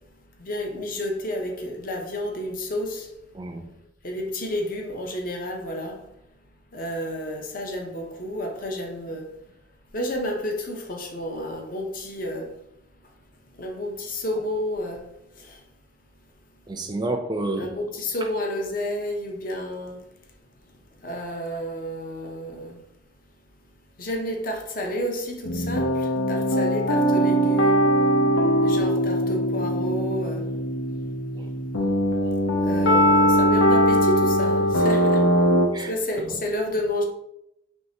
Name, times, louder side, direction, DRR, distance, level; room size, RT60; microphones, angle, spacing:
voice 1, 0.4-3.1 4.0-6.0 6.7-9.3 9.9-12.5 13.6-15.1 15.4-15.6 17.6-20.0 21.0-22.8 24.0-27.9 28.6-30.5 32.6-35.3 35.9-37.0, left 1 dB, 45° left, 0.6 m, -30 dB
voice 2, 3.3-3.7 16.7-17.7 31.4-31.5 35.7-35.9, right 2 dB, 20° right, 0.4 m, -29 dB
sound 1, 25.5-35.7, equal, 90° left, 0.6 m, -21 dB
4.5 x 3.2 x 2.7 m
head